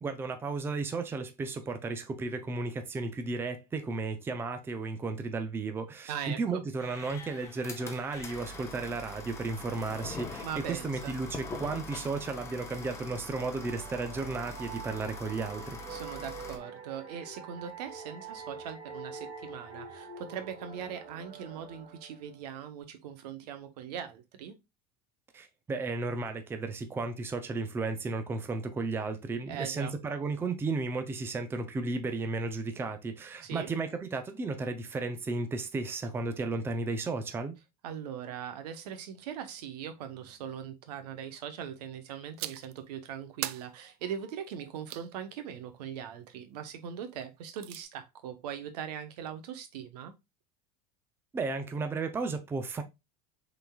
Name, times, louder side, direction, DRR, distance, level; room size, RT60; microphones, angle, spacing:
voice 1, 0.0-15.8 25.3-37.6 51.3-52.8, right 3 dB, 10° right, 0.5 m, -34 dB
voice 2, 6.1-6.6 10.4-11.2 15.9-24.5 29.5-29.9 33.4-33.7 37.8-50.1, right 8 dB, 90° right, 1.1 m, -40 dB
sound 1, 6.8-16.6, left 2 dB, 15° left, 0.9 m, -43 dB
sound 2, 13.4-22.8, right 4 dB, 45° right, 2.4 m, -46 dB
sound 3, 42.4-42.8 43.4-45.1 47.2-47.8, right 15 dB, 70° right, 0.4 m, -40 dB
5.7 x 3.8 x 2.3 m
supercardioid pair, 150°, 20 cm